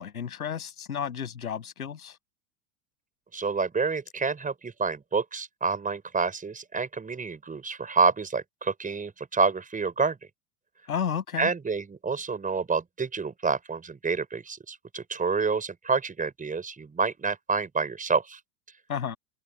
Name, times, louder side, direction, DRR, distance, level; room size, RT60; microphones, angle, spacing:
voice 1, 0.0-2.2 10.9-11.5 18.9-19.2, left 7 dB, 90° left, 7.3 m, -32 dB
voice 2, 3.3-10.2 11.4-18.4, right 4 dB, 20° right, 5.8 m, -28 dB
hypercardioid pair, 90°, 43 cm